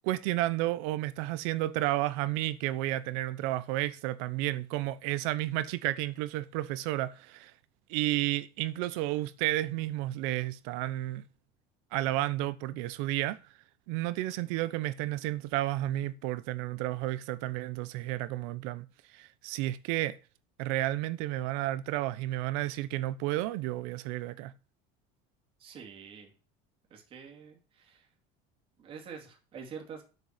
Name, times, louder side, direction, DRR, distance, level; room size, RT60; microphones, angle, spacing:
voice 1, 0.0-7.5 7.9-11.2 11.9-13.4 13.9-18.9 19.1-20.2 20.6-24.5, right 16 dB, 70° right, 1.0 m, -32 dB
voice 2, 25.6-26.3 26.9-28.1 28.8-30.0, right 6 dB, 30° right, 2.6 m, -46 dB
7.4 x 6.4 x 7.5 m
cardioid pair, 175°, 18 cm